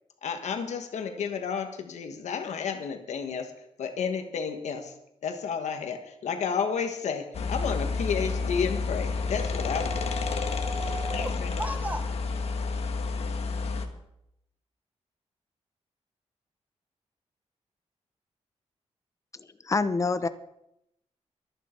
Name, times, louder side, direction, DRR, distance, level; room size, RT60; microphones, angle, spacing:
voice 1, 0.2-3.5 3.8-4.9 5.2-10.0 10.9-11.5, left 6 dB, 85° left, 5 dB, 1.4 m, -31 dB
sound 1, 7.3-13.9, left 4 dB, 65° left, 1.5 m, -30 dB
voice 2, 9.6-12.1, right 1 dB, 15° right, 7 dB, 1.3 m, -37 dB
voice 3, 19.3-20.3, left 4 dB, 25° left, 12 dB, 0.8 m, -27 dB
23.5 x 9.4 x 4.4 m, 0.81 s
wide cardioid pair, 150°, 12 cm